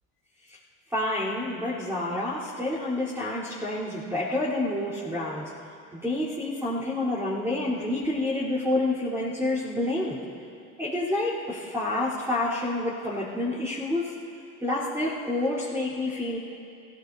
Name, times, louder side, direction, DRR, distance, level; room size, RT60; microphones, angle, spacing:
voice 1, 0.9-5.5 5.9-10.2 10.8-14.1 14.6-16.4, left 1 dB, 10° right, -11 dB, 3.9 m, -28 dB
29.5 x 16.0 x 2.8 m, 2.6 s
cardioid pair, 110°, 36 cm